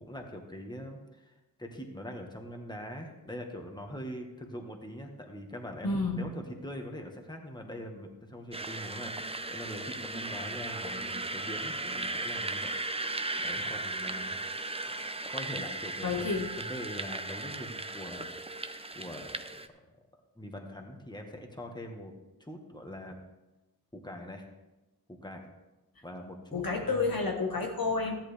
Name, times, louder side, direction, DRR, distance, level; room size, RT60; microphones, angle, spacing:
voice 1, 0.0-12.7 13.4-14.4 15.3-18.3 18.9-19.9 20.4-22.1 22.4-23.2 23.9-24.5 25.1-25.5 26.0-27.1, equal, 10° left, 2 dB, 1.8 m, -43 dB
voice 2, 5.8-6.3 16.0-16.5 26.5-28.2, left 4 dB, 65° left, 1 dB, 1.6 m, -30 dB
sound 1, 8.5-19.7, right 2 dB, 15° right, 0.7 m, -36 dB
13.5 x 10.5 x 3.5 m, 1.0 s
cardioid pair, 50°, 38 cm